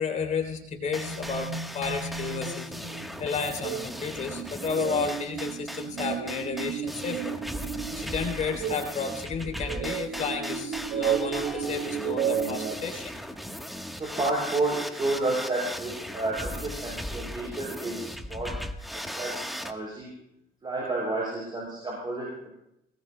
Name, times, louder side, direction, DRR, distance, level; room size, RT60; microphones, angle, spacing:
voice 1, 0.0-7.4 7.9-13.1, left 5 dB, 45° left, 3 dB, 3.0 m, -32 dB
sound 1, 0.5-12.8, right 7 dB, 90° right, 2.1 m, -33 dB
sound 2, 0.9-19.7, equal, ahead, 1.2 m, -38 dB
voice 2, 13.9-18.6 18.9-20.1 20.6-22.3, right 2 dB, 30° right, -4 dB, 6.7 m, -31 dB
25.0 x 19.0 x 2.2 m, 0.81 s
cardioid pair, 110°, 17 cm